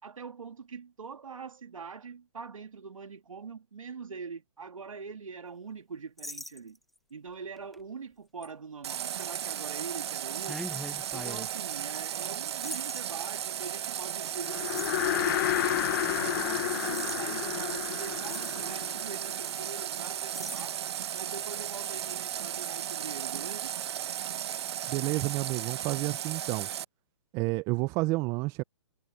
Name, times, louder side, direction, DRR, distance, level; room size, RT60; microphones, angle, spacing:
voice 1, 0.0-6.8 7.1-10.6 11.1-15.8 16.2-23.8, right 5 dB, 85° right, 2.5 m, -43 dB
sound 1, 6.2-7.0 7.6-7.8 8.4-8.5 9.0-9.3 10.5-11.5 12.6-13.0 14.7-15.1 16.7-17.2 17.8-17.9 18.1-18.6 19.5-19.6 19.9-20.0 20.3-20.8, left 1 dB, ahead, 1.0 m, -41 dB
Water tap faucet, 8.8-26.8, right 10 dB, 55° right, 1.3 m, -35 dB
sound 2, 14.4-19.8, left 15 dB, 40° left, 0.9 m, -31 dB
voice 2, 24.9-26.7 27.3-28.6, right 23 dB, 20° right, 0.5 m, -30 dB
hypercardioid pair, 145°, 17 cm